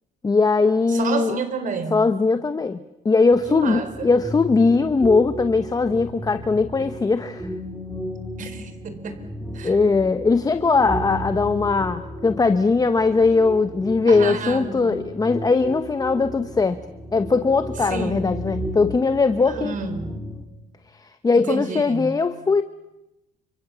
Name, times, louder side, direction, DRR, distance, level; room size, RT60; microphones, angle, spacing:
voice 1, 0.2-1.4 1.9-2.8 3.0-7.5 9.6-16.8 17.1-19.8 21.0-22.6, left 4 dB, 20° left, 10 dB, 1.1 m, -20 dB
voice 2, 0.9-2.1 3.5-4.1 8.4-9.2 9.5-9.8 14.1-14.7 17.9-18.3 19.5-20.1 21.3-22.2, right 4 dB, 50° right, 10 dB, 4.6 m, -30 dB
sound 1, 3.3-20.4, equal, 5° right, 3.8 m, -34 dB
29.5 x 26.5 x 7.0 m, 0.95 s
cardioid pair, 110°, 17 cm